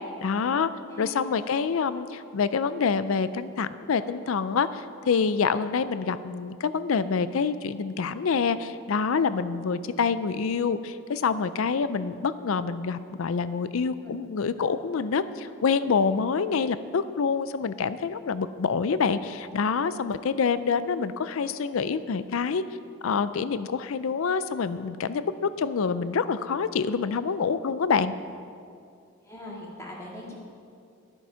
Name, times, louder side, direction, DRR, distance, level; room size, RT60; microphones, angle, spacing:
voice 1, 0.2-0.7 1.0-22.6 23.0-28.1, left 5 dB, 75° left, 14 dB, 0.4 m, -26 dB
voice 2, 0.9-1.2 14.0-14.1 29.2-30.3, left 1 dB, 15° left, -4 dB, 1.9 m, -41 dB
12.0 x 9.2 x 5.6 m, 2.4 s
head